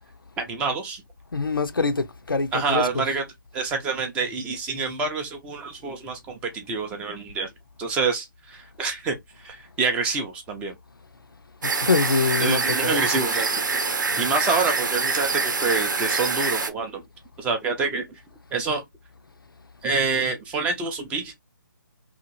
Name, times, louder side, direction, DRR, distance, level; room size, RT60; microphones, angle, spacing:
voice 1, 0.4-1.0 2.5-3.2 3.5-7.5 7.8-9.1 9.4-10.7 12.4-13.6 14.2-17.0 17.4-18.0 18.5-18.8 19.8-21.3, right 4 dB, 10° right, 0.4 m, -27 dB
voice 2, 1.3-3.1 11.6-13.0, left 4 dB, 85° left, 0.5 m, -25 dB
sound 1, 11.6-16.7, right 4 dB, 65° right, 0.7 m, -25 dB
2.8 x 2.4 x 2.6 m
figure-of-eight pair, 145°, 11 cm